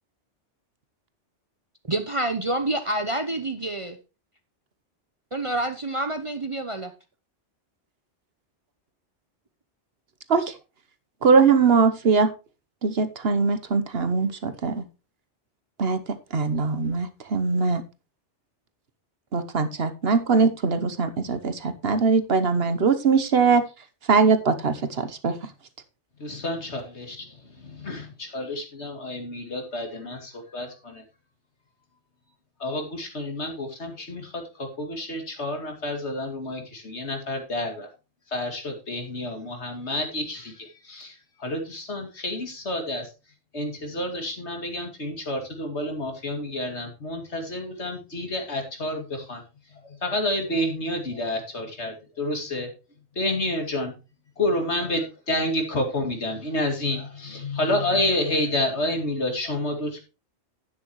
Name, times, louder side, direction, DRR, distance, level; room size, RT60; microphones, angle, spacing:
voice 1, 1.9-4.0 5.3-6.9, right 2 dB, 30° right, 8 dB, 0.8 m, -27 dB
voice 2, 11.2-12.3 12.8-14.8 15.8-17.8 19.3-23.6 24.1-25.4, right 5 dB, 60° right, 11 dB, 1.2 m, -21 dB
voice 3, 26.2-31.0 32.6-37.9 38.3-41.1 41.4-43.1 43.5-49.4 49.8-52.7 53.2-53.9 54.4-60.0, left 1 dB, 70° left, 4 dB, 2.8 m, -29 dB
11.0 x 9.3 x 3.1 m, 0.29 s
omnidirectional pair, 1.2 m